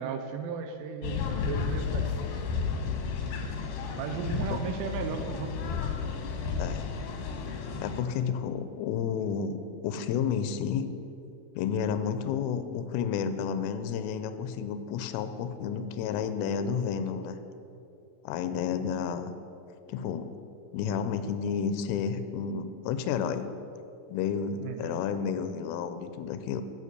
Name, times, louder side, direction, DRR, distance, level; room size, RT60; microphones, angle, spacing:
voice 1, 0.0-2.4 3.9-5.9 24.6-25.0, right 6 dB, 90° right, 6 dB, 3.2 m, -35 dB
sound 1, 1.0-8.0, left 5 dB, 75° left, 2.5 m, -32 dB
voice 2, 7.8-10.9 11.6-17.4 18.2-19.3 19.9-20.3 20.7-23.5 24.1-26.6, left 7 dB, 90° left, 10 dB, 3.2 m, -31 dB
14.0 x 6.7 x 6.7 m, 2.8 s
omnidirectional pair, 5.7 m